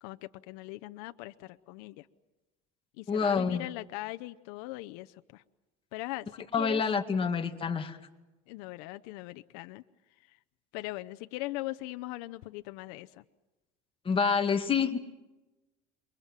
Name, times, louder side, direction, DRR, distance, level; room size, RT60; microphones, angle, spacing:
voice 1, 0.0-2.1 3.0-5.4 5.9-6.3 6.6-6.8 8.5-9.8 10.3-10.4 10.7-13.2, left 19 dB, 85° left, 11 dB, 0.8 m, -40 dB
voice 2, 3.1-3.7 6.5-8.0 14.1-15.0, left 6 dB, 25° left, 5 dB, 2.1 m, -27 dB
28.0 x 23.5 x 7.5 m, 1.1 s
cardioid pair, 125°, 20 cm